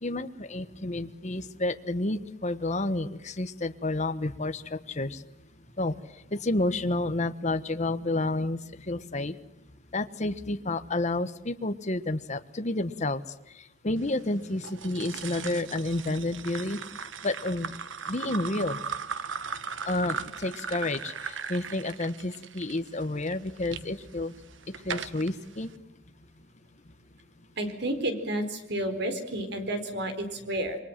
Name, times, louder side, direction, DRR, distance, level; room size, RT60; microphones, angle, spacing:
voice 1, 0.0-5.2 5.8-5.9 6.3-9.4 9.9-13.2 13.8-16.8 17.2-17.7 18.1-18.8 19.8-24.3 24.8-25.7, left 2 dB, 40° left, 9 dB, 1.3 m, -30 dB
sound 1, 14.6-23.8 24.4-25.3, right 6 dB, 85° right, 1.4 m, -38 dB
voice 2, 27.6-30.8, right 1 dB, 60° right, 8 dB, 4.5 m, -31 dB
28.0 x 23.0 x 7.5 m, 0.85 s
head